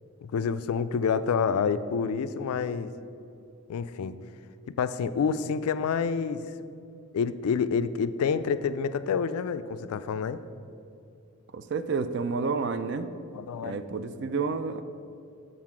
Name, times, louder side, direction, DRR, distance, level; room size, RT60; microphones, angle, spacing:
voice 1, 0.2-2.9 3.7-4.2 4.7-6.4 7.1-10.4 13.3-13.8, left 6 dB, 90° left, 13 dB, 0.3 m, -28 dB
voice 2, 11.5-13.1 13.6-14.8, right 4 dB, 55° right, 11 dB, 0.3 m, -30 dB
7.6 x 4.0 x 6.0 m, 2.6 s
head